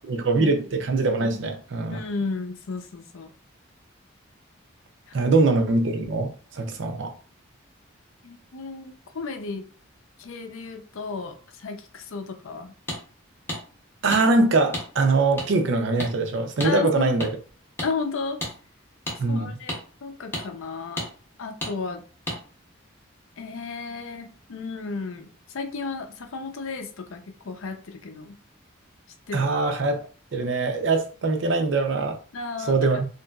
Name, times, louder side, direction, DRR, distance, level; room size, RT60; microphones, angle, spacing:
voice 1, 0.1-2.0 5.1-7.1 14.0-17.3 19.2-19.5 29.3-30.0 30.3-32.2 32.7-33.0, right 3 dB, 65° right, 0.5 m, -22 dB
voice 2, 1.9-3.3 5.1-5.3 8.2-9.7 10.2-12.7 16.6-17.2 17.8-18.4 19.3-21.1 21.4-22.0 23.4-28.4 29.3-29.5 32.3-33.0, left 4 dB, 80° left, 0.5 m, -34 dB
sound 1, 12.9-13.0 13.5-13.6 14.1-14.2 14.7-14.9 15.4-15.5 16.0-16.1 16.6-16.7 17.2-17.3 17.8-17.9 18.4-18.5 19.1-19.2 19.7-19.8 20.3-20.5 21.0-21.1 21.6-21.7 22.3-22.4, left 1 dB, 10° left, 0.6 m, -31 dB
2.8 x 2.5 x 2.2 m
head